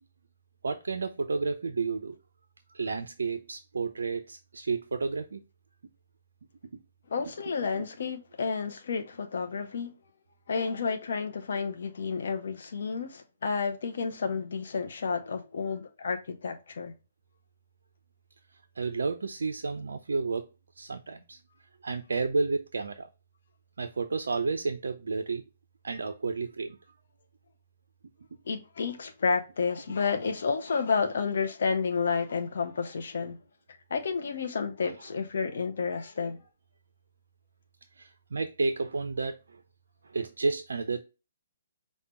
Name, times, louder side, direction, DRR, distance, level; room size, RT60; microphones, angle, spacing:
voice 1, 0.6-2.2 2.7-5.4 7.7-7.8 18.8-20.5 20.8-21.4 21.8-23.1 23.8-25.4 25.8-26.8 34.8-35.0 38.0-39.6 40.0-41.0, right 4 dB, 65° right, 0.3 m, -31 dB
voice 2, 7.1-9.9 10.5-16.9 28.5-33.4 33.9-36.4, left 5 dB, 55° left, 0.5 m, -31 dB
4.9 x 2.1 x 4.1 m
figure-of-eight pair, 130°, 0 cm